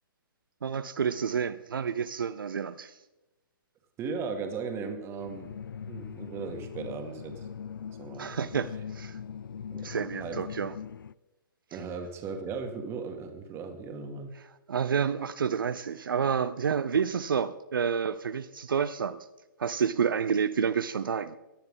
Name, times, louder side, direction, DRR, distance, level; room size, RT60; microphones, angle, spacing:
voice 1, 0.6-3.0 8.2-9.2 9.8-10.7 14.7-19.2 19.6-21.4, right 7 dB, 75° right, 12 dB, 0.6 m, -29 dB
voice 2, 4.0-5.5 5.9-7.5 8.0-8.3 9.7-10.4 11.7-14.3, right 5 dB, 20° right, 5 dB, 1.7 m, -37 dB
sound 1, 5.2-11.1, left 7 dB, 70° left, 0.4 m, -41 dB
17.5 x 11.0 x 3.7 m, 1.0 s
figure-of-eight pair, 130°, 12 cm